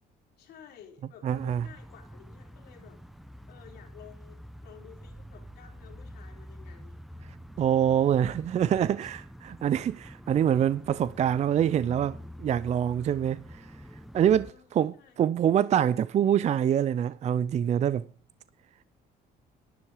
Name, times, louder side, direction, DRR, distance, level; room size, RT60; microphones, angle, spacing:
voice 1, 0.4-3.0 3.5-7.0 14.2-14.7 14.9-15.2, left 9 dB, 70° left, 3.9 m, -53 dB
voice 2, 1.2-1.7 7.6-13.7 14.1-18.1, right 9 dB, 40° right, 0.4 m, -25 dB
sound 1, 1.3-14.5, equal, ahead, 0.7 m, -47 dB
11.5 x 10.5 x 4.9 m
cardioid pair, 110°, 17 cm